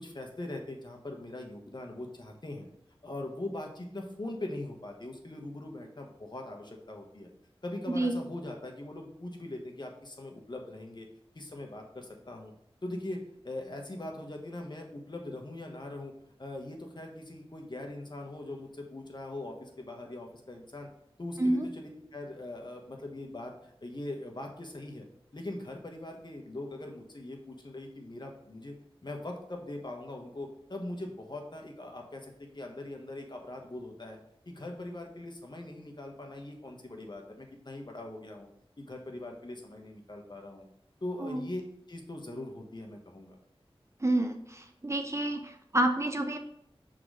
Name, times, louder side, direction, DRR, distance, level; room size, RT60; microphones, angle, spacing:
voice 1, 0.0-2.7 3.0-7.3 7.6-11.1 11.3-12.5 12.8-16.1 16.4-20.9 21.2-25.1 25.3-28.7 29.0-34.2 34.5-38.5 38.8-40.7 41.0-41.6 41.9-43.4, left 1 dB, 45° left, 2 dB, 1.2 m, -41 dB
voice 2, 44.0-46.4, right 1 dB, 30° right, 4 dB, 0.7 m, -29 dB
6.1 x 3.8 x 4.9 m, 0.72 s
wide cardioid pair, 65°, 10 cm